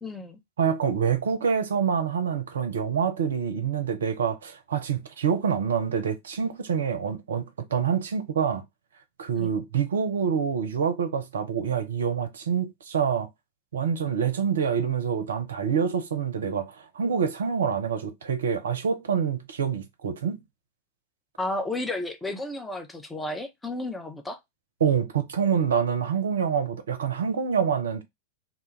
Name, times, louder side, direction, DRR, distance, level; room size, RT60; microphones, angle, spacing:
voice 1, 0.0-0.4 9.4-9.5 21.4-24.4, left 2 dB, 10° left, 0.5 m, -32 dB
voice 2, 0.6-8.6 9.2-13.3 13.7-20.4 24.8-28.0, right 7 dB, 65° right, 0.5 m, -26 dB
2.2 x 2.0 x 2.8 m
figure-of-eight pair, 90°, 0 cm